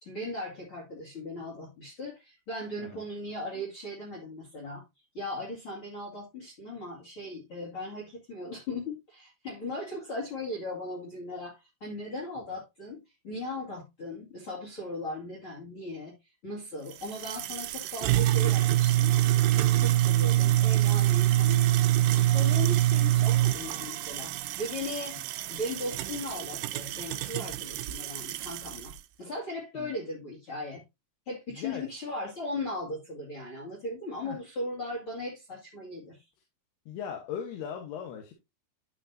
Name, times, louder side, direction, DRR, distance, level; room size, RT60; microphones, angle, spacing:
voice 1, 0.0-4.8 5.1-16.1 16.4-21.7 22.2-25.2 25.5-30.8 31.3-36.2, left 1 dB, 40° left, 2.6 m, -38 dB
sound 1, 16.9-28.9, right 14 dB, 85° right, 1.9 m, -25 dB
voice 2, 31.5-31.9 34.2-34.4 36.9-38.3, left 8 dB, 85° left, 3.2 m, -38 dB
11.0 x 5.9 x 2.6 m
omnidirectional pair, 4.5 m